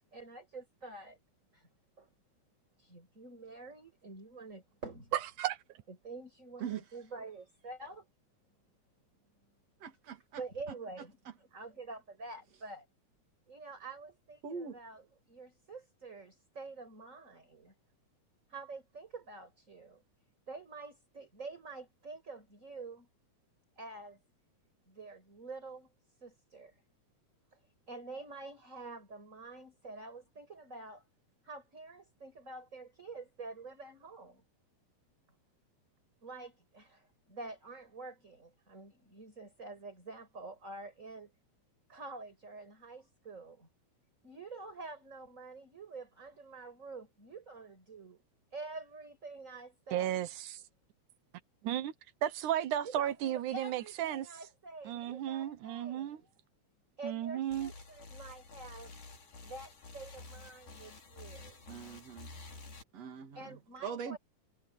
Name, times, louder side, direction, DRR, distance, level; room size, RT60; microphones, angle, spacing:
voice 1, 0.1-1.2 1.5-1.7 2.0-2.1 2.8-5.1 6.0-8.1 10.4-12.9 13.5-17.7 18.5-20.0 20.5-23.1 23.8-24.2 24.9-25.9 26.2-26.8 27.5-27.6 27.9-31.0 31.4-34.4 36.2-41.3 41.9-43.7 44.2-48.2 48.5-50.2 52.8-56.3 57.0-58.9 59.4-61.7 63.3-64.2, right 3 dB, 25° right, 5.7 m, -47 dB
voice 2, 9.8-10.4 14.4-14.8 61.7-62.3 62.9-63.6 63.8-64.2, right 7 dB, 60° right, 3.3 m, -41 dB
voice 3, 49.9-50.6 51.6-51.9 52.2-54.3 54.9-56.2 57.0-57.7, right 11 dB, 85° right, 2.5 m, -34 dB
sound 1, 57.5-62.8, left 3 dB, 90° left, 6.8 m, -50 dB
omnidirectional pair, 3.4 m